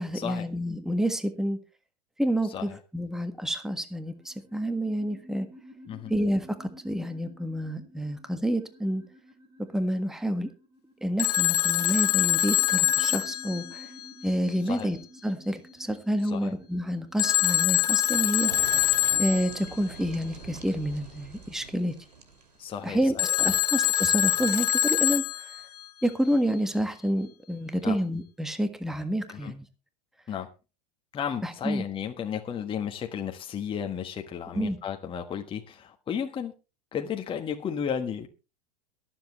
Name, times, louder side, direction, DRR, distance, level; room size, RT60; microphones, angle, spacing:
voice 1, 0.0-1.6 2.2-5.5 6.1-9.0 9.7-10.5 11.0-13.9 14.2-15.0 15.2-18.9 19.2-21.9 22.8-25.5 26.0-29.7 31.4-31.8 34.5-34.8, equal, ahead, 1.6 m, -29 dB
sound 1, 3.8-20.1, equal, 20° right, 5.3 m, -52 dB
Telephone, 11.2-14.3 17.2-19.7 23.2-25.8, left 13 dB, 75° left, 0.7 m, -25 dB
sound 2, 18.5-22.8, right 5 dB, 85° right, 2.6 m, -44 dB
voice 2, 22.6-23.5 27.8-28.0 29.3-29.5 30.3-30.5 31.1-36.5 36.9-38.3, left 8 dB, 25° left, 1.4 m, -33 dB
22.5 x 7.7 x 3.1 m
hypercardioid pair, 95°, 20 cm